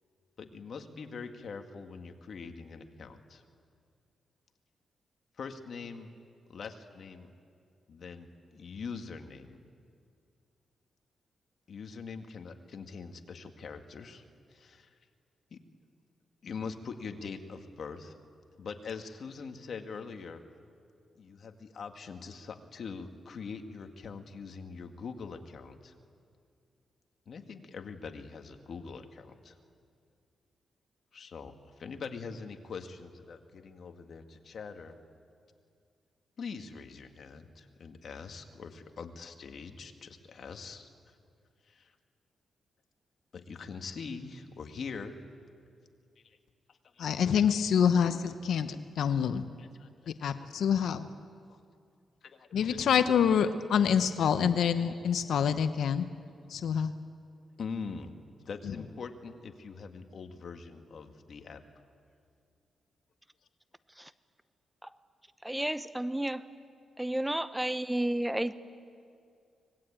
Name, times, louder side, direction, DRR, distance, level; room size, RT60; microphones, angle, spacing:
voice 1, 0.4-3.4 5.4-6.1 6.5-7.3 7.9-9.6 11.7-14.2 14.5-14.9 15.5-15.6 16.4-18.1 18.6-20.4 21.2-25.9 27.3-29.6 31.1-35.0 36.4-40.9 41.7-41.9 43.3-45.2 46.2-46.4 46.7-47.4 49.6-49.7 50.2-50.3 50.7-50.8 51.5-51.6 52.2-52.7 57.6-58.1 58.5-61.6, left 5 dB, 60° left, 5 dB, 2.0 m, -43 dB
voice 2, 47.0-49.4 50.2-51.1 52.5-56.1 56.5-56.9, left 7 dB, 80° left, 10 dB, 0.9 m, -26 dB
voice 3, 65.4-66.4 67.0-68.5, right 1 dB, 10° right, 13 dB, 0.9 m, -31 dB
25.0 x 20.5 x 8.9 m, 2.3 s
cardioid pair, 80°, 0 cm